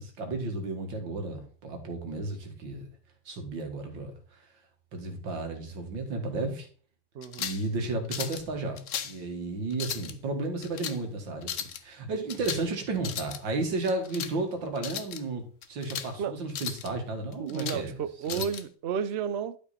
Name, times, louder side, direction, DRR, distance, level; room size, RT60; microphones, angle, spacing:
voice 1, 0.0-2.9 3.3-4.1 4.9-6.7 7.4-18.0 18.3-18.4, right 2 dB, 85° right, 2.5 m, -33 dB
voice 2, 7.1-7.5 16.2-16.4 17.4-19.6, right 7 dB, 65° right, 0.6 m, -32 dB
sound 1, 7.2-7.7 8.1-8.4 8.8-9.2 9.7-10.1 10.6-11.0 11.4-11.8 12.3-12.7 13.0-13.4 13.8-14.3 14.8-15.2 15.6-16.1 16.5-16.9 17.3-17.8 18.3-18.6, left 9 dB, 60° left, 0.9 m, -36 dB
11.5 x 5.3 x 4.2 m
omnidirectional pair, 2.0 m